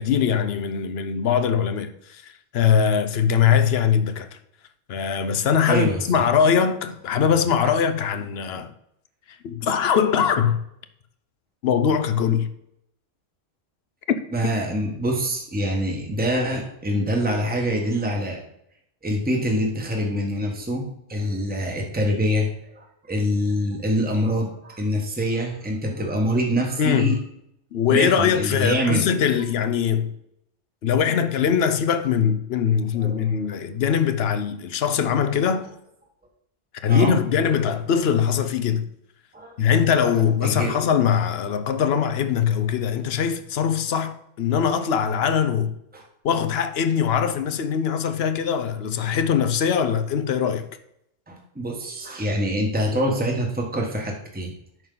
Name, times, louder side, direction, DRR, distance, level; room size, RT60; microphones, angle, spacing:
voice 1, 0.0-4.4 4.9-8.7 9.3-10.6 11.6-12.5 14.1-14.2 26.8-27.2 27.7-30.1 30.8-35.7 36.8-38.9 39.6-45.7 46.2-50.7, left 7 dB, 65° left, 0.9 m, -22 dB
voice 2, 5.7-6.0 14.3-18.4 19.0-27.2 27.9-29.0 32.9-33.4 36.9-37.2 39.3-39.7 40.4-40.7 45.9-46.0 51.3-54.5, equal, 10° right, 1.3 m, -25 dB
9.2 x 6.2 x 3.9 m
omnidirectional pair, 1.2 m